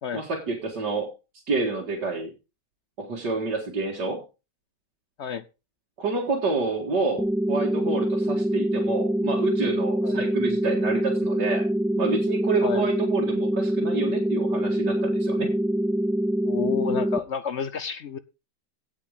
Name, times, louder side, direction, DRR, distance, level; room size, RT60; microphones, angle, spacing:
voice 1, 0.1-1.1 1.5-2.3 3.0-4.2 6.0-11.7 12.0-15.5, right 3 dB, 75° right, 2.6 m, -28 dB
sound 1, 7.2-17.2, right 1 dB, ahead, 0.4 m, -25 dB
voice 2, 16.4-18.2, left 7 dB, 60° left, 0.8 m, -30 dB
17.0 x 5.8 x 5.0 m
omnidirectional pair, 1.8 m